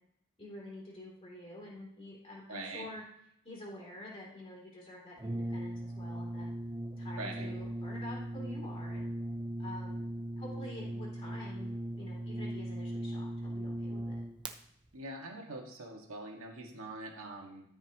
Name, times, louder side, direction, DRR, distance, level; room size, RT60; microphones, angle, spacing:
voice 1, 0.4-3.0 3.4-6.5 7.0-9.1 9.6-10.0 10.4-14.2, left 1 dB, 25° left, -4 dB, 3.2 m, -48 dB
voice 2, 2.5-2.9 7.1-7.5 14.9-17.6, right 2 dB, 85° right, 0 dB, 2.0 m, -43 dB
Brass instrument, 5.2-14.5, right 1 dB, 20° right, 0.6 m, -38 dB
13.5 x 5.6 x 3.0 m, 0.74 s
head